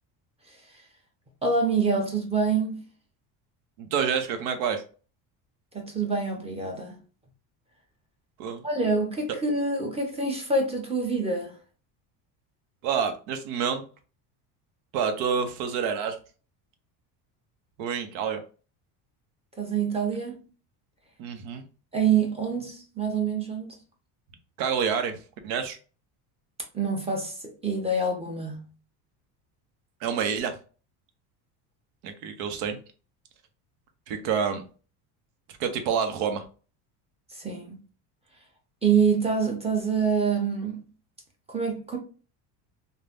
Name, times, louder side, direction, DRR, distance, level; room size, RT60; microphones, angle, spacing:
voice 1, 1.4-2.8 5.7-7.0 8.6-11.5 19.6-20.4 21.9-23.7 26.7-28.7 37.3-37.8 38.8-40.8 41.5-42.0, right 4 dB, 15° right, 1.0 m, -26 dB
voice 2, 3.8-4.8 8.4-8.7 12.8-13.8 14.9-16.2 17.8-18.4 21.2-21.6 24.6-25.8 30.0-30.6 32.0-32.8 34.1-34.6 35.6-36.5, right 7 dB, 75° right, 0.8 m, -28 dB
3.2 x 2.2 x 2.6 m
supercardioid pair, 100°, 47 cm